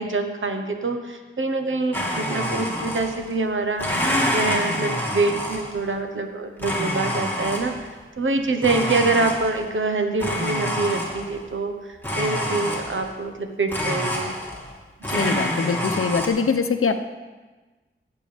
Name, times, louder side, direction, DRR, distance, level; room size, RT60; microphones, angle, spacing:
voice 1, 0.0-4.1 4.3-14.3 15.1-15.4, right 3 dB, 70° right, 5 dB, 1.1 m, -25 dB
Domestic sounds home sounds, 1.9-3.3 3.7-5.9 6.6-7.9 8.6-9.7 10.2-11.4 12.0-13.1 13.7-14.8 15.0-16.3, left 1 dB, 10° left, 2.0 m, -27 dB
voice 2, 15.1-16.9, left 5 dB, 85° left, 8 dB, 0.7 m, -23 dB
16.5 x 7.6 x 3.5 m, 1.2 s
wide cardioid pair, 80°, 21 cm